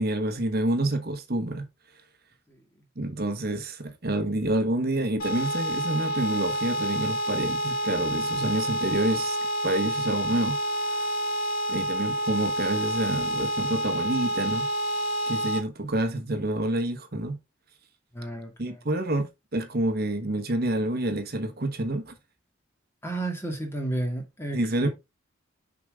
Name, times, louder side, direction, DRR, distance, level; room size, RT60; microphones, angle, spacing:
voice 1, 0.0-1.7 3.0-9.4 9.6-10.6 10.9-11.0 11.7-14.7 15.3-17.4 18.6-22.1 24.5-24.9, right 1 dB, 50° right, 1.2 m, -28 dB
sound 1, 5.2-15.6, right 1 dB, 50° left, 2.1 m, -28 dB
voice 2, 18.1-18.8 23.0-24.9, right 2 dB, 10° left, 2.0 m, -32 dB
6.6 x 5.1 x 3.7 m
head